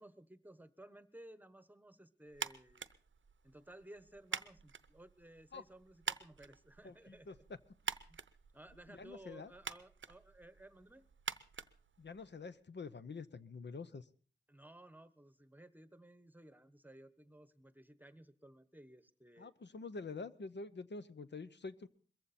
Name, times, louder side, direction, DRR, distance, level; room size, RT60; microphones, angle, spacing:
voice 1, 0.0-2.9 3.4-7.4 8.1-8.2 8.5-11.1 14.5-19.5, right 1 dB, 10° right, 13 dB, 1.1 m, -57 dB
sound 1, 2.3-12.5, right 6 dB, 85° right, 0.7 m, -47 dB
voice 2, 6.8-7.3 8.9-9.5 12.0-14.1 19.4-21.9, left 4 dB, 65° left, 12 dB, 0.8 m, -47 dB
22.0 x 15.0 x 4.2 m, 0.42 s
wide cardioid pair, 75°, 19 cm